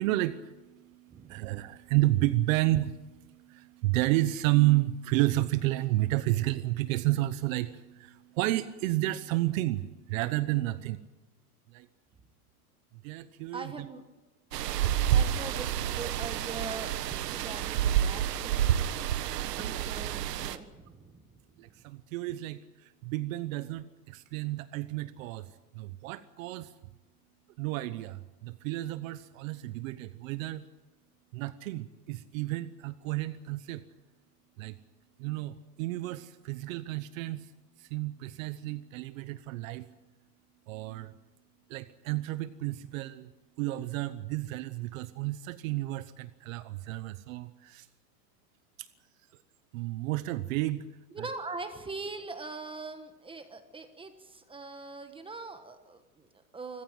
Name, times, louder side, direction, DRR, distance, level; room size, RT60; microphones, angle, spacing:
voice 1, 0.0-11.0 11.7-11.9 13.0-13.9 18.6-18.8 19.3-19.8 21.6-26.7 27.6-30.6 31.3-33.8 34.6-34.8 35.2-37.5 37.8-39.9 40.7-41.1 41.7-43.3 43.6-47.9 48.8-48.9 49.7-50.9 51.2-51.3, right 17 dB, 55° right, 13 dB, 1.0 m, -31 dB
voice 2, 1.1-1.5 13.5-14.0 15.1-18.6 19.4-21.3 51.1-56.8, right 3 dB, 10° right, 8 dB, 1.3 m, -42 dB
sound 1, 14.5-20.6, right 10 dB, 90° right, 1.5 m, -29 dB
25.5 x 15.0 x 9.0 m, 1.1 s
supercardioid pair, 150°, 47 cm